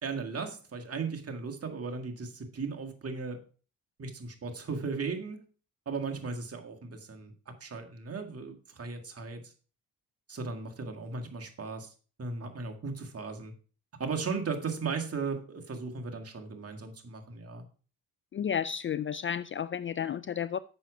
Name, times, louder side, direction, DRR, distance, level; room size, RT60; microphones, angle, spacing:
voice 1, 0.0-3.4 4.0-5.4 5.9-9.4 10.3-11.9 12.2-13.5 14.0-17.6, right 4 dB, 40° right, 1.9 m, -36 dB
voice 2, 18.3-20.6, left 8 dB, 35° left, 0.4 m, -32 dB
7.5 x 6.1 x 5.0 m
supercardioid pair, 65°, 38 cm